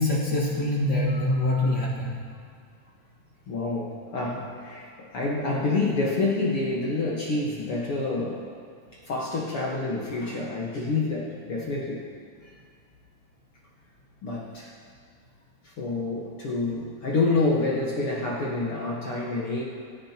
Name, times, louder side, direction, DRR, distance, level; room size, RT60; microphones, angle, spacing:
voice 1, 0.0-2.2, left 1 dB, 50° left, -6 dB, 1.4 m, -24 dB
voice 2, 1.1-1.7 3.5-8.5 8.9-12.0 14.2-14.7 15.6-19.6, left 3 dB, 70° left, -5 dB, 1.3 m, -28 dB
25.0 x 10.5 x 3.0 m, 2.1 s
omnidirectional pair, 4.8 m